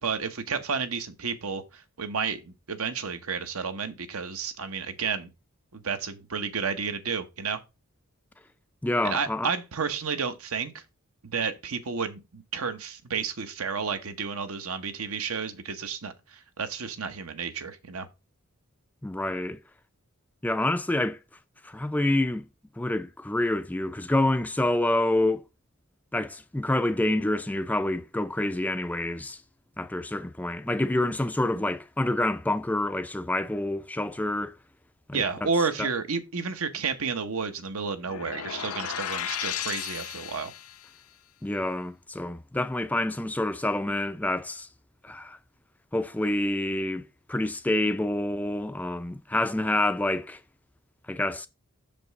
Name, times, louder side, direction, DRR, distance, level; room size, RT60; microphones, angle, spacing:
voice 1, 0.0-5.3 5.7-7.6 9.0-10.8 11.2-18.1 35.1-40.5, right 5 dB, 75° right, 1.0 m, -31 dB
voice 2, 8.8-9.5 19.0-19.6 20.4-21.2 21.6-22.4 22.8-25.4 26.1-29.4 29.8-34.6 35.1-35.5 35.8-35.9 41.4-44.7 45.0-45.4 45.9-50.4 51.1-51.5, left 1 dB, 5° left, 0.3 m, -27 dB
sound 1, 38.0-40.9, left 10 dB, 85° left, 0.6 m, -34 dB
6.6 x 5.2 x 4.0 m
head